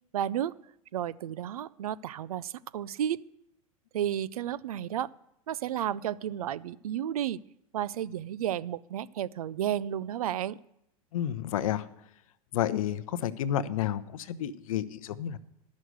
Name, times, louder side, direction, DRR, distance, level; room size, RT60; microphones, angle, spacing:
voice 1, 0.1-0.5 0.9-3.2 3.9-5.1 5.5-7.4 7.7-10.6, right 10 dB, 80° right, 19 dB, 0.4 m, -32 dB
voice 2, 11.1-11.9 12.5-15.4, left 11 dB, 70° left, 15 dB, 0.7 m, -30 dB
11.5 x 6.3 x 8.0 m, 0.80 s
hypercardioid pair, 100°, 18 cm